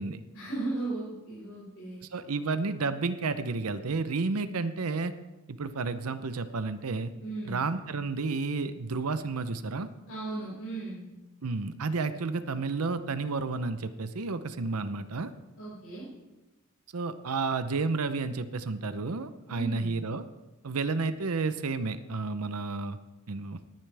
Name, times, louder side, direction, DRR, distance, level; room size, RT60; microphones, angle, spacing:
voice 1, 0.3-2.0 7.2-7.6 10.1-11.1 15.6-16.1 19.5-19.9, right 2 dB, 65° left, -8 dB, 5.2 m, -36 dB
voice 2, 2.1-5.1 5.5-7.1 7.5-9.9 11.4-15.3 16.9-20.2 20.6-23.0 23.3-23.6, right 3 dB, 80° right, 11 dB, 0.7 m, -31 dB
18.0 x 11.0 x 3.4 m, 1.1 s
head